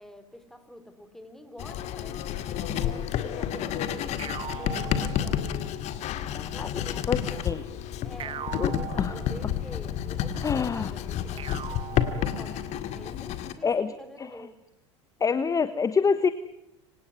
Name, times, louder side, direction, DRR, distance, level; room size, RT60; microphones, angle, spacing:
voice 1, 0.0-2.3 2.8-5.4 6.5-7.4 7.7-14.6, equal, ahead, 10 dB, 3.5 m, -47 dB
Writing, 1.6-13.5, left 10 dB, 45° left, 2.0 m, -30 dB
sound 1, 4.2-5.8 8.2-9.8 11.4-12.9, right 10 dB, 35° right, 1.6 m, -40 dB
voice 2, 6.3-6.7 7.1-7.2 7.4-7.6 8.6-8.7 9.0-9.1 10.4-10.9 13.6-13.9 14.2-14.3 15.2-16.3, left 5 dB, 20° left, 14 dB, 1.1 m, -25 dB
25.5 x 18.0 x 9.6 m, 0.90 s
figure-of-eight pair, 75°, 16 cm